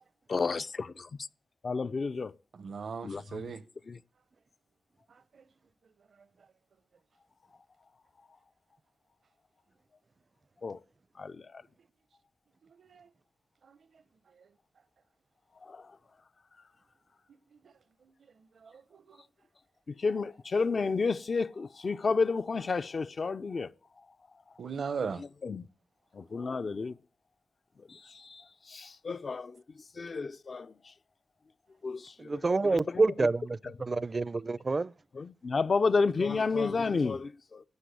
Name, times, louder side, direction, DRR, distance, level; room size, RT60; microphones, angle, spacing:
voice 1, 0.3-1.1 1.6-2.3 3.0-3.4 3.9-4.0 10.6-10.8 11.2-11.4 15.7-15.8 19.9-23.7 25.4-25.6 26.1-26.9 27.9-28.0 28.3-28.4 28.7-29.6 30.0-30.7 31.8-33.3 33.6-33.7 35.1-37.6, left 4 dB, 60° left, 0.5 m, -31 dB
voice 2, 2.5-3.6 5.3-5.4 12.7-13.1 13.6-13.8 18.6-19.2 24.6-25.2, right 5 dB, 75° right, 0.9 m, -38 dB
voice 3, 32.3-34.9, right 3 dB, 45° right, 0.5 m, -28 dB
12.5 x 7.8 x 8.2 m
cardioid pair, 45°, 0 cm